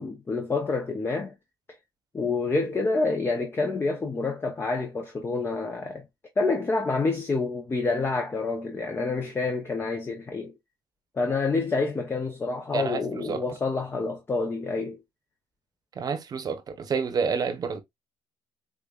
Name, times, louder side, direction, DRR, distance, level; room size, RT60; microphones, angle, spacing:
voice 1, 0.0-1.4 2.1-6.0 6.4-10.5 11.1-15.0, left 3 dB, 25° left, 0.8 m, -28 dB
voice 2, 12.7-13.4 16.0-17.8, right 5 dB, 45° right, 0.9 m, -29 dB
5.0 x 2.5 x 2.3 m
cardioid pair, 100°, 9 cm